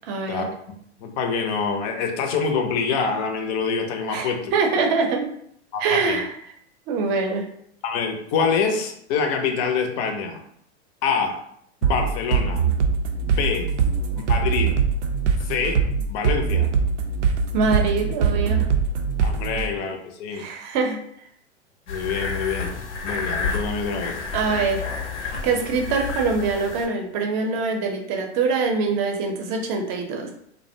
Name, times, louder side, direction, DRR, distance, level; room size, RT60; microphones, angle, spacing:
voice 1, 0.1-0.5 4.1-5.3 5.8-6.3 6.9-7.5 17.5-18.7 20.3-21.0 24.3-24.9 25.4-30.3, right 4 dB, 40° right, 2 dB, 0.6 m, -24 dB
voice 2, 1.0-4.8 5.7-6.2 7.8-10.4 11.0-11.4 11.8-12.6 13.2-13.7 14.3-14.7 15.4-16.7 19.2-20.4 21.9-22.7 23.0-24.2, left 5 dB, 35° left, 4 dB, 0.4 m, -26 dB
sound 1, 11.8-19.7, right 6 dB, 85° right, 0.5 m, -22 dB
sound 2, 21.9-26.9, left 5 dB, 75° left, 0.6 m, -30 dB
2.5 x 2.1 x 2.6 m, 0.69 s
hypercardioid pair, 110°, 35 cm